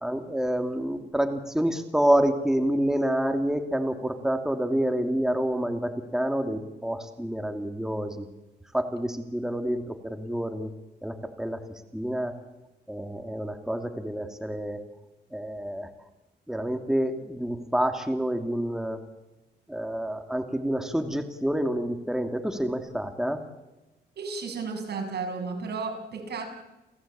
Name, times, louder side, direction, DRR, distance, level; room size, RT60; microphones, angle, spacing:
voice 1, 0.0-8.3 8.7-10.7 11.0-11.6 11.9-12.3 12.9-14.8 15.3-15.9 16.5-19.0 19.7-23.4, right 1 dB, 5° right, 6 dB, 2.5 m, -28 dB
voice 2, 24.2-26.5, right 4 dB, 60° right, 4 dB, 7.0 m, -33 dB
30.0 x 16.0 x 8.7 m, 1.0 s
cardioid pair, 95°, 19 cm